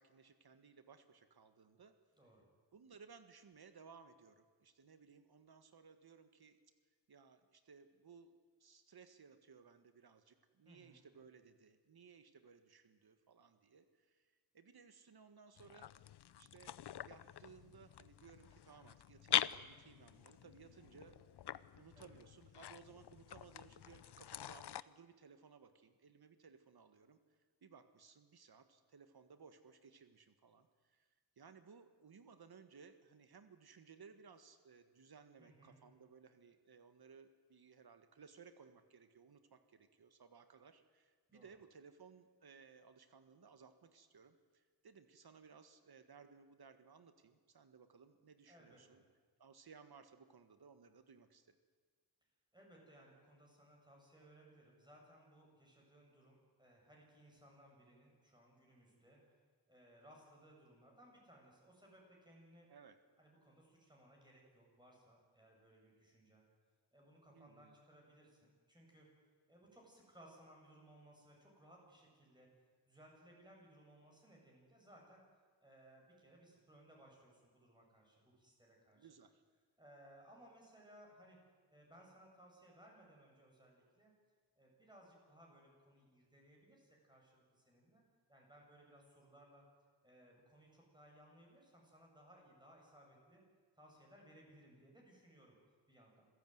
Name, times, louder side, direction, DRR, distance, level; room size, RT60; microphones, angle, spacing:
voice 1, 0.0-2.0 2.7-6.6 7.1-8.3 8.6-15.9 16.3-21.2 21.7-27.2 27.6-31.1 31.4-49.0 49.4-51.6 62.7-63.0 67.3-67.8 78.9-79.4, right 5 dB, 65° right, 9 dB, 1.7 m, -61 dB
voice 2, 2.1-2.4 10.6-11.0 21.9-22.1 35.4-35.8 41.3-41.5 48.5-49.0 52.5-59.2 59.7-62.7 63.2-66.4 66.9-69.1 69.5-72.5 72.9-75.2 75.6-79.1 79.8-81.4 81.7-84.1 84.6-88.0 88.3-89.6 90.0-93.4 93.8-95.5 95.9-96.3, right 1 dB, 10° right, -2 dB, 7.9 m, -63 dB
sound 1, 15.6-24.8, left 11 dB, 75° left, 0.7 m, -44 dB
26.5 x 16.0 x 9.5 m, 1.5 s
wide cardioid pair, 115°, 41 cm